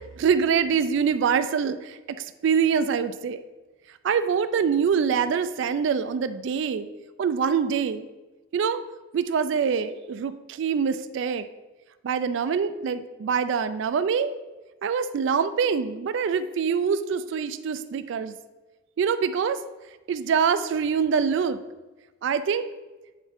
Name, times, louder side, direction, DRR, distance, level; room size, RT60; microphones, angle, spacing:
voice 1, 0.2-2.2 2.4-3.4 4.0-6.9 7.2-8.1 8.5-8.8 9.1-11.5 12.0-14.3 14.8-18.4 19.0-19.6 20.1-21.6 22.2-22.6, right 6 dB, 65° right, 12 dB, 0.3 m, -24 dB
9.1 x 3.6 x 3.5 m, 1.2 s
head